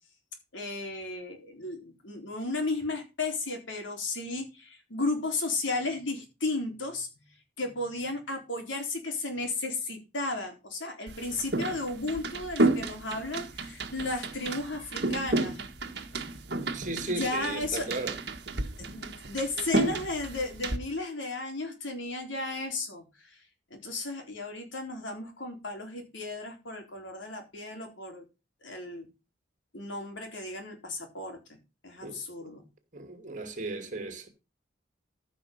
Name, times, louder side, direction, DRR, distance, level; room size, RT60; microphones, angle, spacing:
voice 1, 0.5-7.1 7.6-15.6 17.1-17.9 18.8-23.4 23.7-28.2 28.6-29.1 29.7-31.4 31.8-32.7, left 2 dB, 80° left, 3.9 m, -34 dB
sound 1, 11.1-20.8, right 2 dB, 55° right, 1.6 m, -32 dB
voice 2, 16.7-18.2 32.0-32.5 32.9-34.3, right 2 dB, 40° right, 2.5 m, -36 dB
14.5 x 6.0 x 5.7 m
head